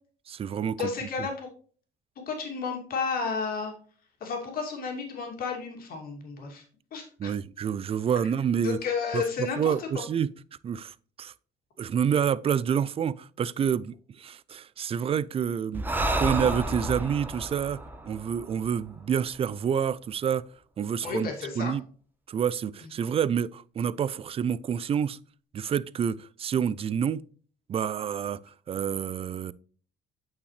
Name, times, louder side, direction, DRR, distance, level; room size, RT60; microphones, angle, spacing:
voice 1, 0.3-0.9 7.2-8.8 9.1-10.3 10.6-11.3 11.8-17.8 18.1-20.4 20.8-21.8 22.3-25.2 25.5-27.2 27.7-29.5, right 8 dB, 35° right, 0.4 m, -28 dB
voice 2, 0.8-1.5 2.3-3.7 4.2-6.6 6.9-7.3 8.6-10.0 21.0-21.8 22.8-22.9, left 5 dB, 60° left, 2.5 m, -32 dB
Breathing, 15.7-19.3, right 2 dB, 10° right, 1.0 m, -31 dB
8.9 x 5.7 x 3.2 m
cardioid pair, 110°, 17 cm